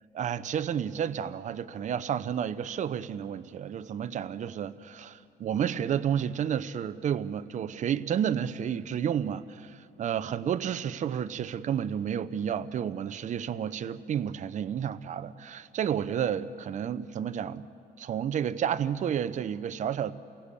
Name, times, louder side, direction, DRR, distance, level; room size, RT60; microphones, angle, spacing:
voice 1, 0.1-17.7 18.0-20.1, right 9 dB, 45° right, 13 dB, 0.8 m, -31 dB
28.0 x 17.5 x 8.4 m, 2.8 s
cardioid pair, 110°, 17 cm